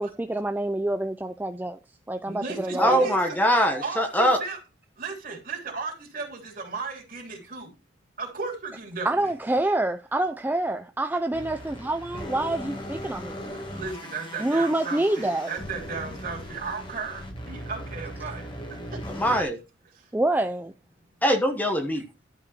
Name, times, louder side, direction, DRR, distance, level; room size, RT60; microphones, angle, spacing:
voice 1, 0.0-1.8 2.1-3.0 9.0-13.4 14.4-15.5 20.1-20.7, right 1 dB, 10° right, 0.4 m, -27 dB
voice 2, 2.2-3.4 3.8-4.6 5.0-7.7 8.2-9.3 13.7-19.0 19.9-20.1, right 4 dB, 50° right, 3.2 m, -35 dB
voice 3, 2.8-4.4 19.1-19.6 21.2-22.0, equal, 10° left, 1.1 m, -22 dB
sound 1, 11.3-19.4, equal, 25° left, 2.2 m, -38 dB
11.5 x 4.9 x 4.3 m
head